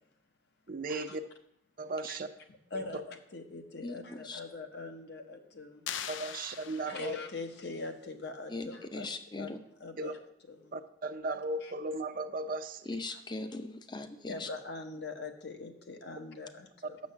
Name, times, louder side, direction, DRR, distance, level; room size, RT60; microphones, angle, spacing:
voice 1, 0.7-1.2 1.8-2.3 2.7-3.0 6.1-7.1 10.0-10.1 10.7-13.0, right 2 dB, 50° right, 9 dB, 0.5 m, -36 dB
voice 2, 2.7-5.9 6.8-9.5 9.8-10.2 10.5-10.7 11.6-11.7 14.3-17.0, left 3 dB, 60° left, 5 dB, 1.0 m, -42 dB
voice 3, 3.8-4.4 8.5-9.6 12.9-14.5, left 2 dB, 25° left, 9 dB, 0.6 m, -40 dB
sound 1, 5.9-7.4, left 9 dB, 85° left, 0.4 m, -41 dB
6.5 x 6.3 x 7.1 m, 0.76 s
head